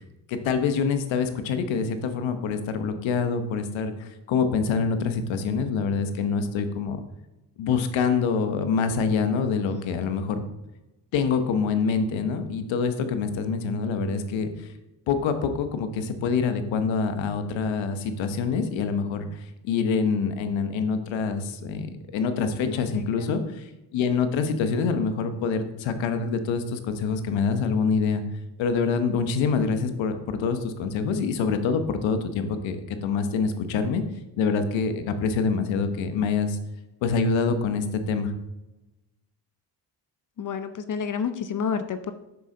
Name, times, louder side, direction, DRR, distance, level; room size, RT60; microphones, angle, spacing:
voice 1, 0.3-7.0 7.6-10.4 11.1-14.7 15.1-28.2 28.6-34.0 34.4-36.6 37.0-38.3, left 5 dB, 80° left, 9 dB, 1.0 m, -26 dB
voice 2, 9.7-10.0 22.6-23.3 40.4-42.1, left 6 dB, 45° left, 10 dB, 0.7 m, -31 dB
6.9 x 6.5 x 3.8 m, 0.98 s
cardioid pair, 75°, 45 cm